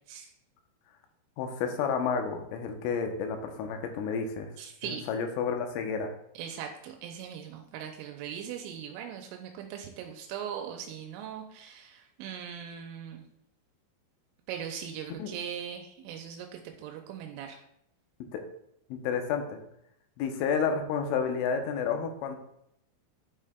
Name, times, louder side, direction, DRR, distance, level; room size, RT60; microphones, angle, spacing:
voice 1, 1.4-4.5 4.8-6.1 15.2-15.3 18.3-18.4 18.9-19.6 20.2-22.4, left 6 dB, 85° left, 5 dB, 3.3 m, -30 dB
voice 2, 4.6-5.0 6.4-13.2 14.5-16.5 16.8-17.6, right 8 dB, 85° right, 3 dB, 3.1 m, -40 dB
12.0 x 4.9 x 2.2 m, 0.76 s
omnidirectional pair, 5.6 m